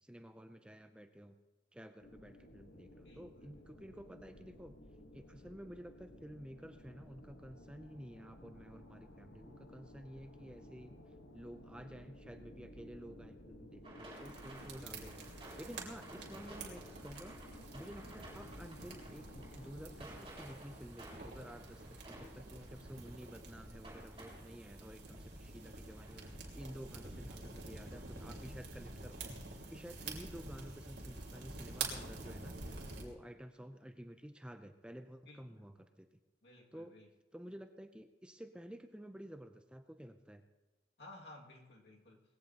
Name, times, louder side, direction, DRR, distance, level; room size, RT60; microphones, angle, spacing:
voice 1, 0.0-1.4 1.7-4.8 5.1-10.9 11.3-17.4 17.7-26.3 26.5-29.4 29.7-32.6 33.0-36.1 36.7-36.9 37.3-40.4, equal, 5° right, 7 dB, 0.5 m, -51 dB
sound 1, 2.0-20.1, left 1 dB, 80° left, 1.4 m, -56 dB
voice 2, 3.0-3.5 35.3-35.6 36.4-37.1 41.0-42.2, left 2 dB, 65° left, -1 dB, 2.3 m, -56 dB
sound 2, 13.8-28.2, right 1 dB, 25° right, 6.0 m, -56 dB
sound 3, 14.1-33.0, right 3 dB, 65° right, 3.0 m, -48 dB
20.0 x 15.5 x 2.9 m, 1.1 s
head